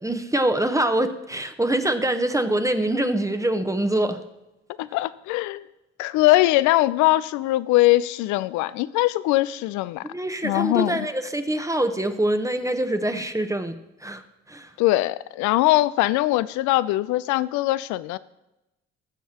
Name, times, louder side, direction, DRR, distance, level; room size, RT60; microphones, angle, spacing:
voice 1, 0.0-4.2 10.1-13.7 14.0-14.2 14.5-14.7, right 1 dB, 10° right, 1.0 m, -24 dB
voice 2, 4.8-5.7 6.0-10.0 10.4-11.0 14.8-18.2, left 17 dB, 65° left, 0.5 m, -21 dB
20.0 x 7.2 x 3.0 m
hypercardioid pair, 55°, 32 cm